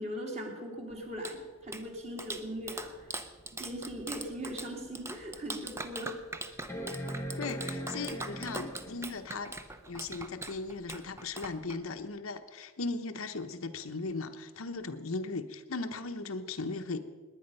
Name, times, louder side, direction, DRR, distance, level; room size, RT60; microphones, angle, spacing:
voice 1, 0.0-3.1 3.6-6.2, equal, 35° right, 0 dB, 2.8 m, -39 dB
Clapping, 0.9-12.1, right 2 dB, 15° right, 0.7 m, -43 dB
sound 1, 5.2-5.3 6.7-9.2 10.9-11.0, equal, 15° left, 1.1 m, -39 dB
voice 2, 7.4-9.5 9.9-17.1, left 3 dB, 90° left, 7 dB, 1.0 m, -37 dB
18.5 x 10.0 x 5.5 m, 1.4 s
head